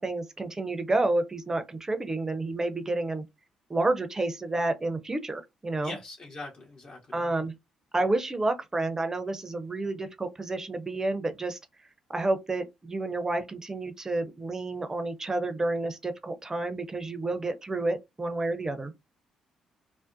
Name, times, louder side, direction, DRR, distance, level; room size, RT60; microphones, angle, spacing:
voice 1, 0.0-3.2 3.7-6.0 7.1-7.5 7.9-11.6 12.1-18.9, right 2 dB, 20° right, 0.5 m, -30 dB
voice 2, 5.8-7.2, left 2 dB, 40° left, 0.7 m, -41 dB
2.5 x 2.1 x 2.5 m
figure-of-eight pair, 40°, 3 cm